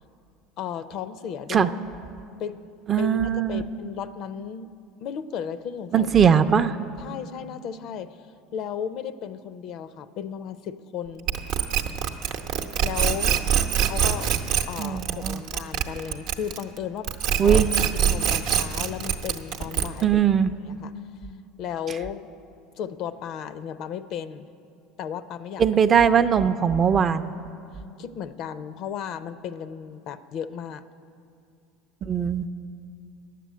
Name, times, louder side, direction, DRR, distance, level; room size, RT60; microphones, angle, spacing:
voice 1, 0.6-1.8 2.4-2.6 3.0-4.7 5.0-6.1 7.0-8.2 8.5-11.3 12.8-13.4 13.8-14.3 14.6-17.6 17.9-20.2 20.6-20.9 21.6-22.3 22.8-24.5 25.0-25.6 26.4-26.5 28.0-30.8, left 8 dB, 55° left, 14 dB, 0.5 m, -34 dB
voice 2, 2.9-3.6 5.9-6.8 14.8-15.4 17.4-17.7 20.0-20.5 25.6-27.3 32.0-32.5, right 7 dB, 35° right, 10 dB, 0.4 m, -20 dB
sound 1, 11.3-16.8 17.0-20.1, right 8 dB, 65° right, 0.7 m, -24 dB
9.7 x 7.5 x 8.2 m, 2.5 s
supercardioid pair, 100°, 0 cm